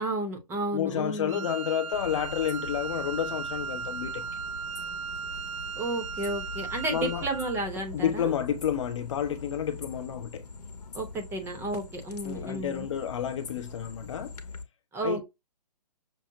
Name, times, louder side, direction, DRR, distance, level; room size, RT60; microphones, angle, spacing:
voice 1, 0.0-1.5 5.7-8.3 10.9-12.9 14.9-15.2, right 2 dB, 10° right, 0.8 m, -32 dB
voice 2, 0.7-4.3 6.9-7.3 7.9-10.5 12.2-14.4 15.0-15.2, left 9 dB, 45° left, 0.7 m, -30 dB
Wind instrument woodwind instrument, 1.3-7.6, right 6 dB, 50° right, 0.5 m, -37 dB
sound 1, 1.9-14.6, left 4 dB, 70° left, 1.0 m, -43 dB
6.2 x 2.1 x 2.7 m
hypercardioid pair, 140°, 21 cm